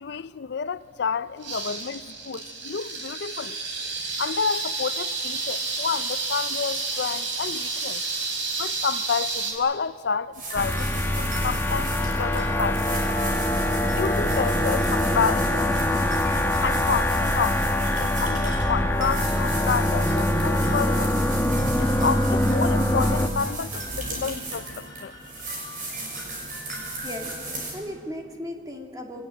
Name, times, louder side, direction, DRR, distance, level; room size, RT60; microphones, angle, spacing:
voice 1, 0.0-3.6 4.2-8.0 8.6-10.9 11.2-11.9 12.2-13.0 14.0-15.7 16.6-21.2 21.8-25.1, left 6 dB, 60° left, 0.5 m, -29 dB
sound 1, 1.4-9.5, right 3 dB, 70° right, 5.2 m, -30 dB
sound 2, 10.3-27.7, right 2 dB, 45° right, 6.4 m, -35 dB
sound 3, 10.6-23.3, left 1 dB, 10° left, 1.1 m, -24 dB
voice 2, 26.7-29.2, left 1 dB, 20° right, 2.6 m, -37 dB
25.0 x 18.5 x 9.0 m
head